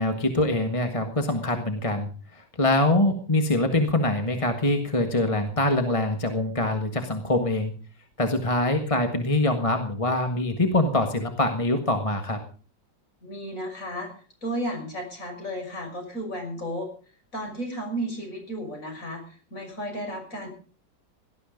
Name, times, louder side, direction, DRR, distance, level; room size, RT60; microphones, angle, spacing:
voice 1, 0.0-7.7 8.2-12.4, left 1 dB, 20° left, 6 dB, 1.6 m, -24 dB
voice 2, 13.2-14.1 14.4-16.9 17.3-20.5, equal, 50° left, 2 dB, 6.6 m, -33 dB
18.0 x 12.5 x 5.1 m, 0.38 s
omnidirectional pair, 1.9 m